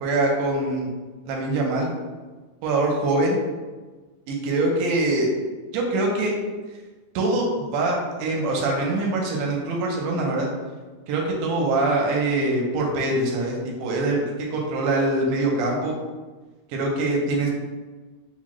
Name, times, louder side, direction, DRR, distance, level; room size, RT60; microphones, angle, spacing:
voice 1, 0.0-0.9 1.3-1.9 2.6-3.4 4.3-5.3 5.7-6.3 7.2-10.5 11.1-16.0 16.7-17.5, right 2 dB, 90° right, -1 dB, 2.2 m, -23 dB
4.9 x 2.1 x 3.0 m, 1.3 s
omnidirectional pair, 3.5 m